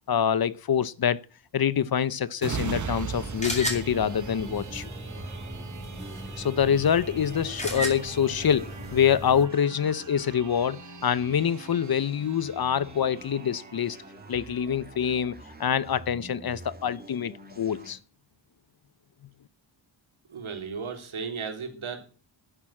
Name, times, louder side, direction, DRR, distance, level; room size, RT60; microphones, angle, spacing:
voice 1, 0.1-1.2 1.5-4.9 6.4-14.0 14.3-18.0, left 8 dB, 50° left, 0.7 m, -26 dB
sound 1, 2.4-15.7 16.2-16.3, right 6 dB, 40° right, 0.9 m, -41 dB
sound 2, 2.6-9.4, equal, 15° left, 4.1 m, -36 dB
sound 3, 2.7-17.9, right 1 dB, 20° right, 2.3 m, -47 dB
voice 2, 20.3-22.0, right 5 dB, 85° right, 3.4 m, -35 dB
11.5 x 9.4 x 7.4 m
wide cardioid pair, 145°, 48 cm